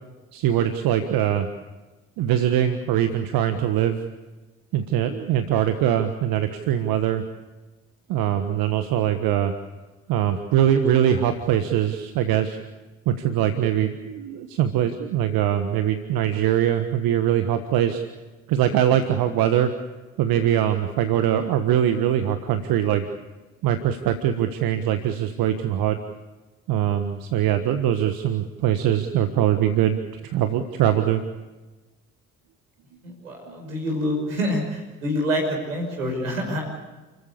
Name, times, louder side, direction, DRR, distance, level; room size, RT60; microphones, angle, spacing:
voice 1, 0.3-1.5 2.2-4.0 4.7-7.2 8.1-9.5 10.1-12.6 13.0-18.0 18.5-19.7 20.2-23.1 23.6-26.0 26.7-31.2 33.5-33.6, right 10 dB, 60° right, 8 dB, 1.5 m, -22 dB
voice 2, 33.0-36.7, equal, 85° right, 1 dB, 6.1 m, -26 dB
30.0 x 15.0 x 8.5 m, 1.2 s
figure-of-eight pair, 45°, 39 cm